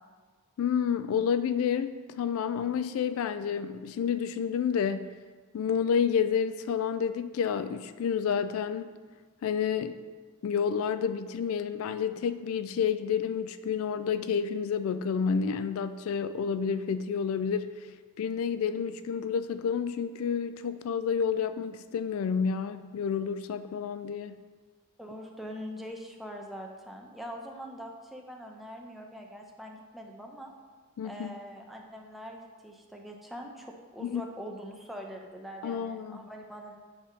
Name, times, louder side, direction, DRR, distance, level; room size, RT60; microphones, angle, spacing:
voice 1, 0.6-5.1 5.5-8.9 9.4-10.0 10.4-17.7 18.2-24.4 31.0-31.3 34.0-34.2 35.6-36.2, left 7 dB, 70° left, 12 dB, 0.3 m, -29 dB
voice 2, 25.0-30.5 31.0-36.8, equal, ahead, 0 dB, 0.6 m, -43 dB
8.7 x 3.5 x 5.2 m, 1.4 s
head